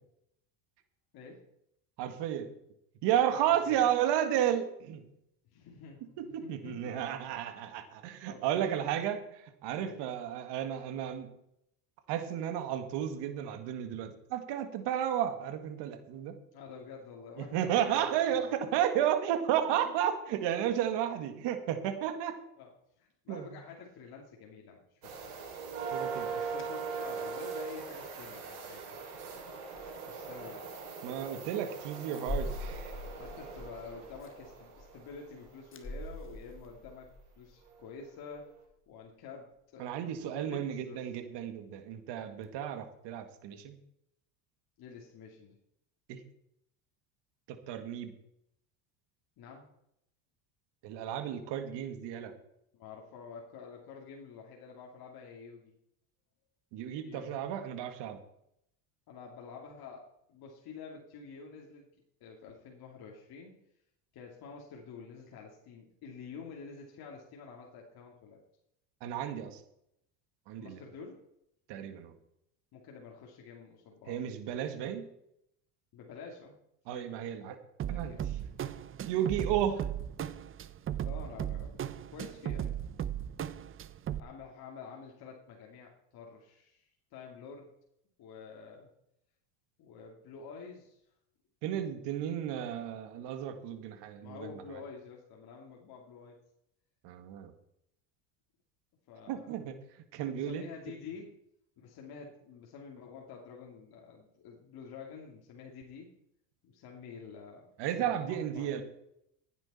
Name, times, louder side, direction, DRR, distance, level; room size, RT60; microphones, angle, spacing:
voice 1, 2.0-2.5 3.0-5.0 6.2-11.3 12.1-16.4 17.4-22.4 23.3-23.5 25.9-26.3 31.0-33.0 39.8-43.8 46.1-46.2 47.5-48.1 50.8-52.3 56.7-58.2 69.0-69.6 70.5-70.8 71.7-72.1 74.1-75.1 76.9-77.6 77.9-78.1 79.1-79.9 91.6-94.8 97.0-97.5 99.3-100.6 107.8-108.8, right 10 dB, 65° right, 8 dB, 1.9 m, -33 dB
voice 2, 5.5-7.4 8.3-8.7 9.8-9.9 16.5-18.5 19.7-19.9 22.6-22.7 23.0-25.3 26.3-29.0 29.8-30.7 33.2-37.1 37.4-38.5 38.9-39.9 40.2-41.0 44.8-45.6 49.4-49.7 52.7-55.7 56.9-57.3 59.1-61.9 62.2-63.6 64.1-68.4 70.6-71.2 72.7-74.2 75.9-76.6 76.9-77.1 77.9-78.3 81.0-81.8 82.1-82.8 84.2-87.7 88.2-88.9 89.8-91.0 94.2-96.4 99.1-99.6 100.3-101.3 101.8-106.1 106.6-107.7 107.9-108.7, left 5 dB, 55° left, -1 dB, 2.7 m, -48 dB
sound 1, 25.0-35.6 37.7-37.8 38.3-38.5, right 5 dB, 85° right, 5.7 m, -41 dB
sound 2, 26.5-27.3 27.8-28.0 28.3-28.4 29.2-29.4 29.7-30.0 30.3-30.4 32.1-38.0 38.3-38.4 38.7-38.8 42.4-42.5, left 1 dB, 25° left, 2.1 m, -43 dB
sound 3, 77.8-84.2, right 10 dB, 30° right, 0.6 m, -37 dB
15.0 x 9.6 x 4.3 m, 0.77 s
supercardioid pair, 100°, 45 cm